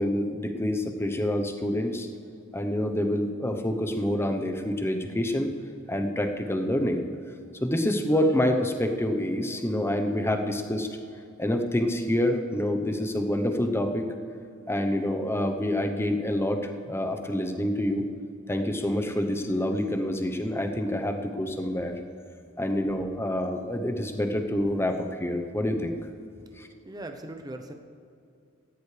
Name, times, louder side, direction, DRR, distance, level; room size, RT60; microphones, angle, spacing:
voice 1, 0.0-2.1 2.5-5.5 5.9-7.0 7.6-10.9 11.4-14.0 14.7-18.0 18.5-21.9 22.6-25.9 26.6-26.7, left 1 dB, 10° left, 5 dB, 0.9 m, -27 dB
voice 2, 26.9-27.7, right 1 dB, 20° right, 5 dB, 0.7 m, -39 dB
17.0 x 15.0 x 3.4 m, 2.5 s
head